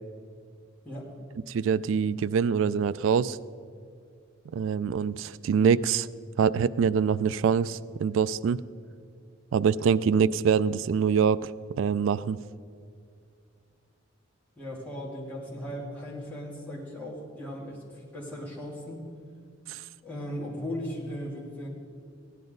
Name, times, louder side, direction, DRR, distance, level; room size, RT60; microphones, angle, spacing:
voice 1, 1.5-3.4 4.5-6.1 6.4-8.6 9.5-11.5 11.8-12.4 19.7-19.8, right 6 dB, 70° right, 17 dB, 0.3 m, -24 dB
voice 2, 14.6-19.0 20.0-21.7, equal, 10° left, -6 dB, 2.8 m, -37 dB
16.5 x 10.5 x 3.9 m, 2.3 s
head